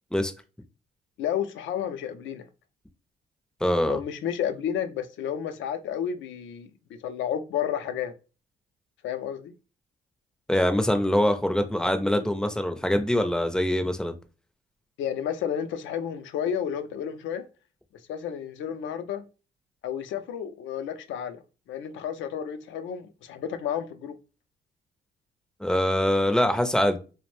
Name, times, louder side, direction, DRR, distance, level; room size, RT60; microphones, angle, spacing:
voice 1, 1.2-2.5 3.9-6.7 7.0-8.1 9.0-9.5 15.0-17.4 18.1-19.2 19.8-21.4 21.7-24.2, left 9 dB, 75° left, 0.4 m, -31 dB
voice 2, 3.6-4.0 10.5-14.1 25.6-27.0, left 1 dB, 5° left, 0.4 m, -24 dB
2.5 x 2.0 x 3.0 m
cardioid pair, 90°, 20 cm